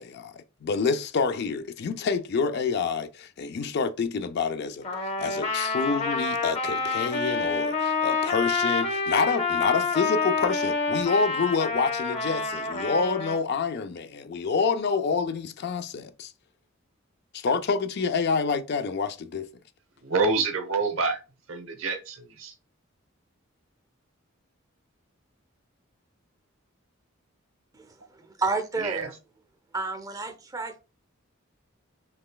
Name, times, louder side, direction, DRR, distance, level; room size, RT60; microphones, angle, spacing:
voice 1, 0.0-16.3 17.3-19.5, left 5 dB, 50° left, 0.4 m, -27 dB
Trumpet, 4.8-13.4, left 4 dB, 30° left, 0.9 m, -28 dB
voice 2, 20.0-21.2 21.5-22.5 28.8-29.1, right 4 dB, 70° right, 0.8 m, -27 dB
voice 3, 27.7-29.2 29.7-30.8, right 3 dB, 15° right, 0.5 m, -31 dB
5.6 x 3.2 x 2.3 m
head